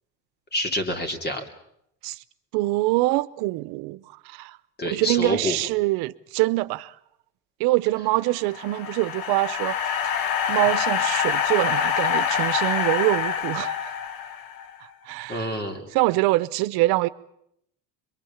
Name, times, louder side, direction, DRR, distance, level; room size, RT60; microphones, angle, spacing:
voice 1, 0.5-1.4 4.8-5.6 15.3-15.9, left 1 dB, 25° left, 3.0 m, -27 dB
voice 2, 2.5-4.6 4.8-6.9 7.6-9.8 10.0-13.9 15.1-15.6 15.9-17.1, right 19 dB, 90° right, 0.8 m, -24 dB
Air Gasps, 8.3-14.7, left 8 dB, 70° left, 1.5 m, -26 dB
23.5 x 23.0 x 7.2 m
cardioid pair, 135°, 36 cm